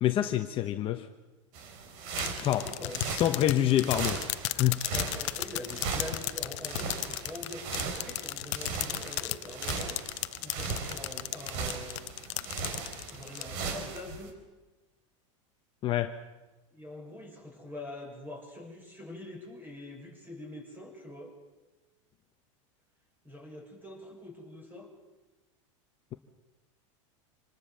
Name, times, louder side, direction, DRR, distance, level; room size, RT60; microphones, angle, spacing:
voice 1, 0.0-1.1 2.4-2.7 3.1-4.2 4.5-4.8 15.8-16.2, left 12 dB, 35° left, 1.1 m, -26 dB
sound 1, 1.5-14.3, right 5 dB, 55° right, 4.6 m, -38 dB
sound 2, 2.2-13.4, left 19 dB, 65° left, 0.9 m, -35 dB
voice 2, 2.4-3.8 4.9-10.0 10.4-12.1 13.1-14.3 16.7-21.3 23.2-24.9, left 1 dB, 10° right, 7.2 m, -44 dB
26.5 x 19.5 x 6.9 m
supercardioid pair, 135°, 16 cm